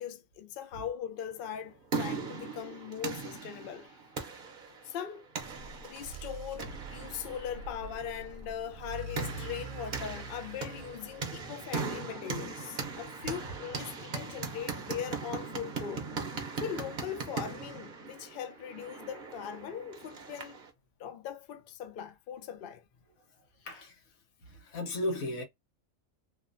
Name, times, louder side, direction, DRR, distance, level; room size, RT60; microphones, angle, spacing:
voice 1, 0.0-3.9 4.8-5.2 5.8-16.1 16.6-20.6 21.0-22.8, left 9 dB, 65° left, 0.5 m, -40 dB
sound 1, 1.5-20.7, right 4 dB, 50° right, 0.7 m, -40 dB
sound 2, 5.4-12.3, right 2 dB, 85° right, 1.0 m, -45 dB
voice 2, 23.6-24.0 24.4-25.4, left 1 dB, 85° left, 1.2 m, -36 dB
2.9 x 2.1 x 2.5 m
omnidirectional pair, 1.4 m